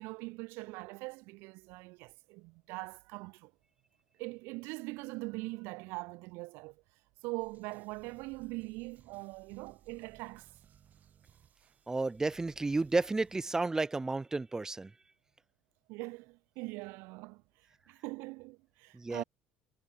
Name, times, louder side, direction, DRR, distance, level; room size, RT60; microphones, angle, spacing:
voice 1, 0.0-3.5 4.2-6.8 7.2-10.5 15.9-17.4 17.9-19.2, right 25 dB, 75° right, 1.4 m, -42 dB
sound 1, 7.4-13.5, right 9 dB, 45° right, 3.5 m, -62 dB
voice 2, 11.9-14.9 18.9-19.2, right 3 dB, 15° right, 0.5 m, -32 dB
supercardioid pair, 100°, 4 cm